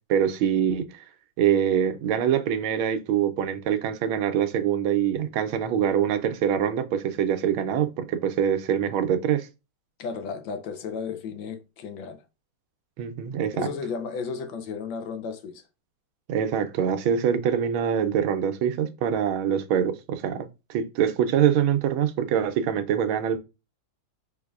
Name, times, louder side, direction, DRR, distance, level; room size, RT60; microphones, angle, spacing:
voice 1, 0.1-1.0 1.4-9.5 13.0-13.7 16.3-23.4, right 9 dB, 85° right, 1.5 m, -24 dB
voice 2, 10.0-12.2 13.5-15.6, left 5 dB, 75° left, 1.4 m, -34 dB
5.1 x 4.0 x 2.3 m
omnidirectional pair, 2.2 m